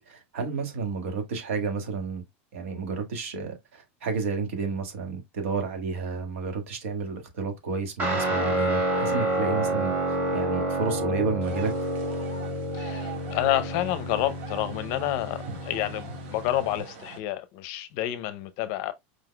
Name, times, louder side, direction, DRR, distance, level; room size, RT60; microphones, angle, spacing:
voice 1, 0.0-2.2 2.5-11.7, right 4 dB, 85° right, 1.7 m, -31 dB
Guitar, 8.0-16.8, right 1 dB, 25° right, 1.6 m, -29 dB
sound 1, 11.4-17.2, right 5 dB, 65° right, 1.8 m, -43 dB
voice 2, 12.7-18.9, left 14 dB, 45° left, 0.6 m, -29 dB
5.0 x 4.0 x 2.2 m
supercardioid pair, 165°, 7 cm